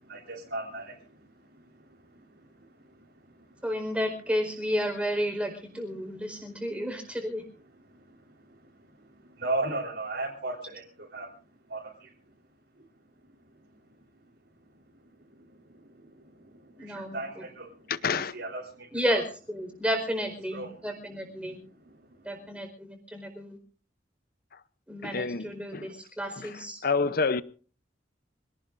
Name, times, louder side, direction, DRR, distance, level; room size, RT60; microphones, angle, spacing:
voice 1, 0.1-1.1 2.1-2.4 9.4-10.8 11.1-11.3 11.7-12.1 15.3-15.4 15.7-17.7 18.3-19.2 20.5-20.7, right 2 dB, 65° right, -4 dB, 4.0 m, -36 dB
voice 2, 3.6-7.4 16.8-17.4 18.9-21.6 22.2-23.6 24.9-26.8, equal, 5° right, 4 dB, 4.8 m, -32 dB
voice 3, 17.9-18.3 24.5-24.6 25.0-25.9 26.4-26.5 26.8-27.4, left 4 dB, 55° left, 15 dB, 0.7 m, -28 dB
27.0 x 18.5 x 2.6 m, 0.40 s
head